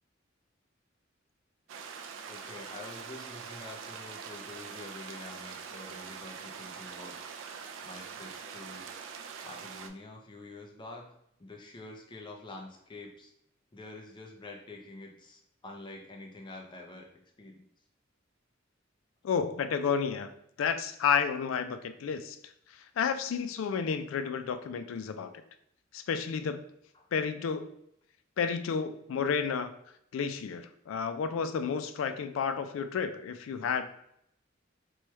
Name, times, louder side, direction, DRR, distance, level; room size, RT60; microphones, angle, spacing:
sound 1, 1.7-9.9, right 6 dB, 70° right, 0.3 m, -44 dB
voice 1, 2.2-7.2 7.8-8.9 9.4-11.1 11.4-13.3 13.7-17.1 17.4-17.6 26.9-27.1, left 2 dB, 25° left, 1 dB, 0.5 m, -47 dB
voice 2, 19.2-20.3 20.6-22.4 23.0-25.3 25.9-26.6 27.1-27.7 28.4-29.7 30.1-33.8, left 6 dB, 85° left, 9 dB, 0.3 m, -31 dB
3.1 x 2.2 x 3.0 m, 0.72 s
head